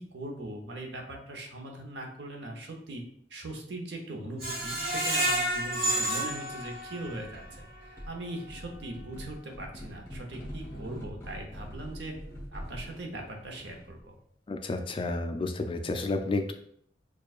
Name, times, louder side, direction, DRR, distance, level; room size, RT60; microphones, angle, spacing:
voice 1, 0.0-3.0 3.3-12.1 12.5-14.1, right 1 dB, 85° right, 2 dB, 0.8 m, -40 dB
Screech, 4.4-7.4 7.8-7.9 8.3-8.4, right 1 dB, 60° right, 1.3 m, -30 dB
sound 1, 6.9-7.6 8.0-14.0, equal, 15° left, 0.9 m, -44 dB
voice 2, 14.5-16.5, left 2 dB, 30° left, 6 dB, 0.4 m, -31 dB
6.3 x 2.4 x 2.4 m, 0.67 s
head